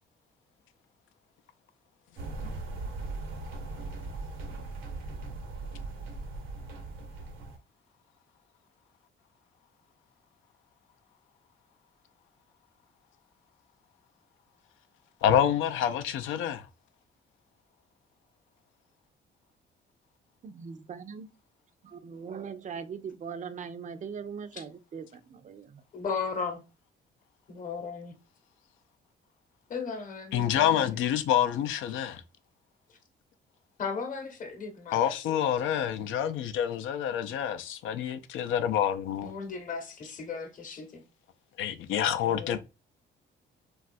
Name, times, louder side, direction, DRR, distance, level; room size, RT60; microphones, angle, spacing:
sound 1, 2.2-7.6, right 3 dB, 85° right, 0.8 m, -39 dB
voice 1, 15.2-16.7 30.3-32.2 34.9-39.3 41.6-42.6, left 9 dB, 80° left, 0.4 m, -27 dB
voice 2, 20.4-21.3 21.8-25.8, right 6 dB, 40° right, 0.4 m, -40 dB
voice 3, 25.9-26.6 27.5-28.1 29.7-30.9 32.9-33.0 33.8-35.2 39.2-41.0 42.2-42.6, left 5 dB, 40° left, 0.8 m, -36 dB
3.1 x 2.3 x 2.5 m
cardioid pair, 90°, 20 cm